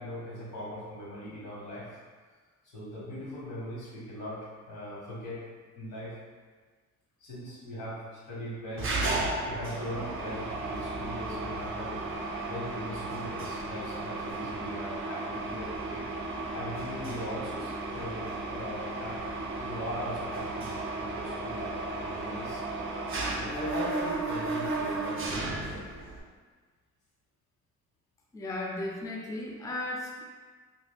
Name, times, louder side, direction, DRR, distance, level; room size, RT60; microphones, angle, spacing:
voice 1, 0.0-2.0 2.7-5.4 5.7-6.1 7.2-9.2 9.4-12.0 12.5-16.0 16.5-22.6 23.3-26.0, equal, 85° left, -7 dB, 1.4 m, -40 dB
Mechanisms, 8.8-26.2, right 2 dB, 45° right, 0.6 m, -34 dB
voice 2, 28.3-30.2, left 2 dB, 10° left, -1 dB, 0.4 m, -35 dB
2.5 x 2.2 x 3.4 m, 1.5 s
cardioid pair, 90°, 30 cm